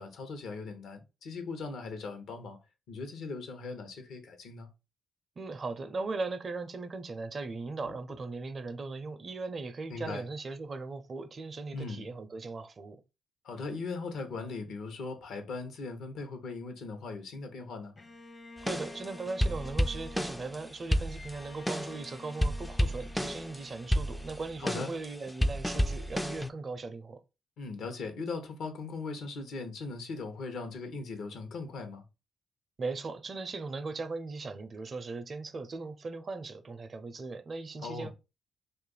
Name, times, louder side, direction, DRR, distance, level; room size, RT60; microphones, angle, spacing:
voice 1, 0.0-2.6 2.9-4.7 7.9-8.0 9.9-10.3 11.7-12.1 13.4-17.9 24.6-24.9 27.6-32.0 37.8-38.1, left 4 dB, 75° left, 0.8 m, -39 dB
voice 2, 5.4-13.0 18.6-27.2 32.8-38.1, right 3 dB, 50° right, 0.5 m, -38 dB
Bowed string instrument, 18.0-25.2, left 2 dB, 45° left, 0.7 m, -51 dB
sound 1, 18.6-20.6 20.9-22.1 22.3-23.6 23.9-26.5, equal, 10° left, 0.3 m, -30 dB
2.7 x 2.4 x 3.9 m
supercardioid pair, 55°, 0 cm